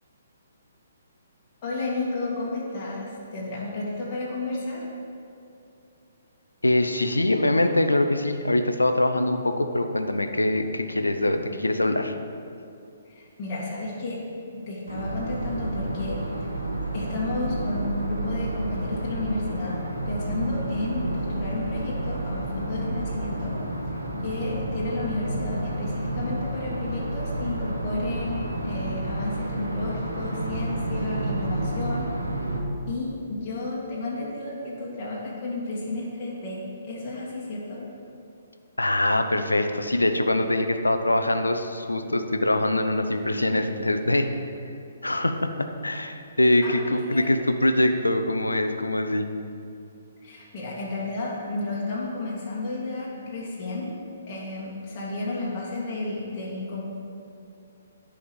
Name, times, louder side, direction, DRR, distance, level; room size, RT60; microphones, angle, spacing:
voice 1, 1.6-4.8 13.0-14.3 14.7-16.4 16.9-23.5 24.2-32.1 32.9-37.8 46.6-47.4 50.2-53.9 54.3-56.9, left 2 dB, 30° left, -6 dB, 2.1 m, -32 dB
voice 2, 6.6-12.1 38.8-44.3 45.0-49.3, left 1 dB, 80° left, 8 dB, 0.7 m, -23 dB
sound 1, 14.9-32.6, right 1 dB, 85° right, 1.3 m, -30 dB
10.0 x 5.0 x 7.0 m, 2.6 s
figure-of-eight pair, 130°, 0 cm